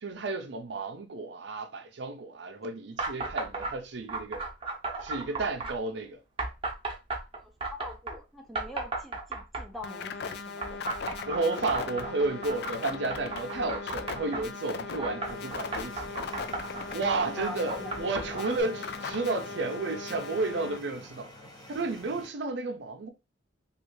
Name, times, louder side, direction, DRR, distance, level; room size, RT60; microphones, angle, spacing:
voice 1, 0.0-4.4 5.0-6.2 11.3-16.3 16.9-21.3 21.7-23.1, right 3 dB, 65° right, 0.5 m, -32 dB
sound 1, 3.0-3.7 4.1-5.8 6.4-8.2 8.5-9.9 10.6-14.4 15.0-18.6, right 3 dB, 30° right, 0.7 m, -35 dB
voice 2, 7.3-10.8 17.3-18.0, left 1 dB, ahead, 0.4 m, -43 dB
sound 2, 9.8-20.8, left 4 dB, 60° left, 0.4 m, -38 dB
sound 3, 15.2-22.3, left 1 dB, 20° left, 0.9 m, -48 dB
3.2 x 2.4 x 3.0 m
head